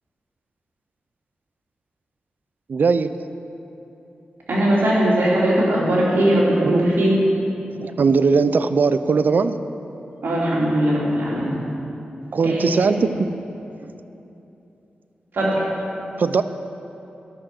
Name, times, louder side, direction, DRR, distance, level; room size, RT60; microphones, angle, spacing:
voice 1, 2.7-3.1 6.6-6.9 7.8-9.5 12.3-13.1 16.2-16.4, right 5 dB, 65° right, 12 dB, 0.4 m, -19 dB
voice 2, 4.5-7.1 10.2-11.6 12.4-13.1 15.3-15.6, right 1 dB, 85° right, -6 dB, 2.8 m, -20 dB
11.5 x 6.8 x 6.0 m, 2.9 s
cardioid pair, 60°, 3 cm